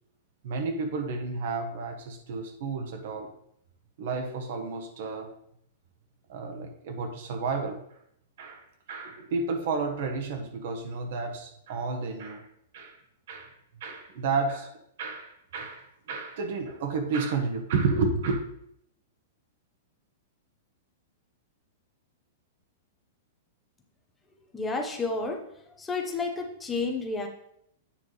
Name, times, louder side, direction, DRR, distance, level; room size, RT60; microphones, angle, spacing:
voice 1, 0.4-3.3 4.0-5.3 6.3-8.0 8.4-12.5 12.7-13.0 13.3-13.5 13.8-14.7 15.0-18.4, right 4 dB, 55° right, 5 dB, 1.2 m, -31 dB
voice 2, 24.5-27.3, left 3 dB, 10° left, 2 dB, 0.9 m, -31 dB
8.7 x 5.7 x 3.3 m, 0.72 s
supercardioid pair, 165°, 0 cm